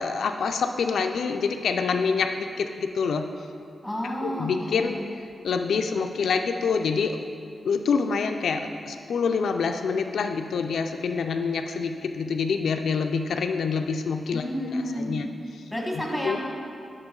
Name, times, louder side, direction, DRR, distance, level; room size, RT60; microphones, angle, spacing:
voice 1, 0.0-3.2 4.2-7.3 7.7-14.4 15.0-15.3 15.9-16.4, left 5 dB, 85° left, 6 dB, 0.4 m, -26 dB
voice 2, 3.8-5.0 14.3-15.2 15.7-16.4, equal, ahead, -1 dB, 1.2 m, -30 dB
8.9 x 6.0 x 3.7 m, 2.5 s
wide cardioid pair, 120°, 0 cm